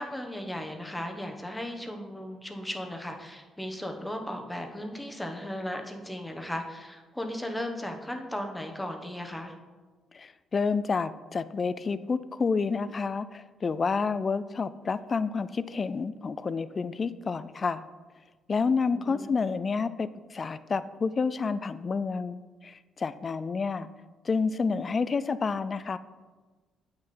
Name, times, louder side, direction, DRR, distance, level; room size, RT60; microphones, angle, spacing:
voice 1, 0.0-9.5 18.9-19.2, left 1 dB, 10° left, 4 dB, 1.1 m, -36 dB
voice 2, 10.1-17.8 18.5-23.9 24.2-26.0, left 4 dB, 40° left, 14 dB, 0.4 m, -29 dB
8.1 x 6.3 x 4.3 m, 1.3 s
cardioid pair, 90°, 0 cm